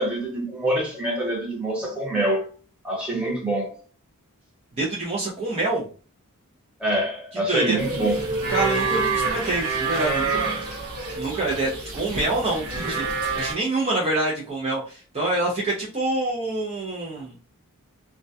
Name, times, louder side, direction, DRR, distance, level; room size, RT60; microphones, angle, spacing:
voice 1, 0.0-2.5 2.8-3.8 6.8-8.4, right 1 dB, 5° right, 0.9 m, -25 dB
voice 2, 4.8-5.9 7.5-7.8 8.5-10.6 11.2-17.4, right 2 dB, 30° right, 0.5 m, -26 dB
sound 1, 7.8-13.5, right 4 dB, 75° right, 1.0 m, -27 dB
2.2 x 2.1 x 2.6 m
head